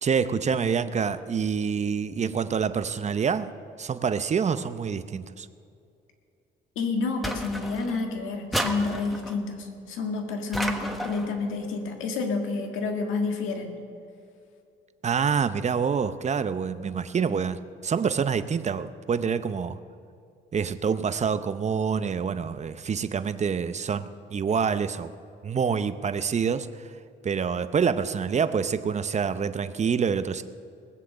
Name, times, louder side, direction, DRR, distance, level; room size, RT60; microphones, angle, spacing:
voice 1, 0.0-3.5 3.8-5.5 15.0-19.8 20.5-25.1 25.4-26.7 27.2-30.4, right 6 dB, 35° right, 11 dB, 0.7 m, -26 dB
voice 2, 6.7-13.7, left 4 dB, 90° left, 3 dB, 1.8 m, -29 dB
sound 1, 7.2-8.0 8.5-9.4 10.5-11.3, equal, ahead, 1.3 m, -31 dB
20.0 x 7.6 x 6.6 m, 2.5 s
cardioid pair, 90°, 20 cm